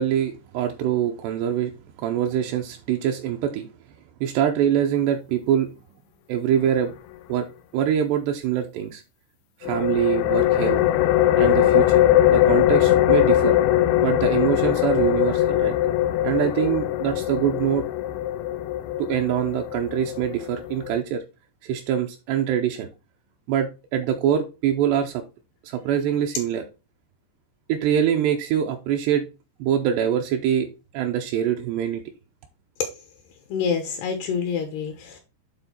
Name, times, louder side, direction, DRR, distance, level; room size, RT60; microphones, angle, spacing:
voice 1, 0.0-1.7 2.0-3.7 4.2-5.7 6.3-6.9 7.3-7.5 7.7-9.0 9.6-10.8 11.3-12.0 12.3-15.8 16.2-17.9 19.0-21.2 21.6-22.9 23.5-25.2 25.6-26.6 27.7-29.3 29.6-30.7 30.9-32.0, right 9 dB, 80° right, 3 dB, 2.6 m, -24 dB
sound 1, 9.6-21.0, left 13 dB, 90° left, 2.3 m, -21 dB
voice 2, 33.5-35.2, left 6 dB, 75° left, 5 dB, 2.8 m, -27 dB
9.3 x 3.8 x 4.2 m, 0.29 s
omnidirectional pair, 5.2 m